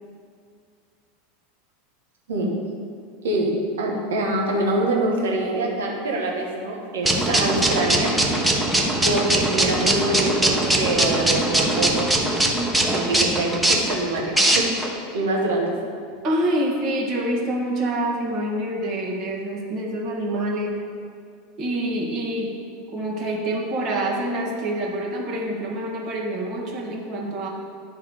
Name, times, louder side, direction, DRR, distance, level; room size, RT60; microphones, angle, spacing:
voice 1, 3.8-8.1 9.0-12.1 12.9-15.7, right 2 dB, 85° right, -1 dB, 1.5 m, -25 dB
sound 1, 7.0-14.9, right 1 dB, 5° right, 1.0 m, -21 dB
voice 2, 16.2-20.8 21.6-22.6 22.9-27.5, right 1 dB, 50° right, -1 dB, 1.8 m, -26 dB
10.5 x 3.6 x 4.8 m, 2.2 s
hypercardioid pair, 100°, 0 cm